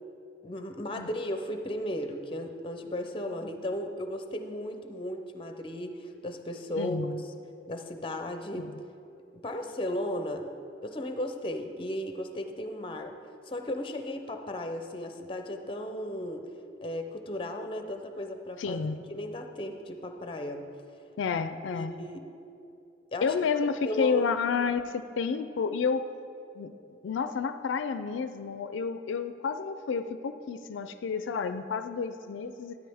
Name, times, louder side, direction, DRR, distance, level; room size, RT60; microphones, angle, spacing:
voice 1, 0.4-7.3 7.7-8.7 9.3-10.5 10.8-13.1 13.5-16.4 16.8-20.7 21.7-22.3 23.1-23.3 23.8-24.3, left 1 dB, 25° left, 6 dB, 0.5 m, -35 dB
voice 2, 6.8-7.2 8.6-8.7 18.6-19.0 21.2-21.9 23.2-26.0 26.6-26.7 27.0-32.8, left 5 dB, 80° left, 10 dB, 0.4 m, -30 dB
12.5 x 9.1 x 3.5 m, 2.6 s
head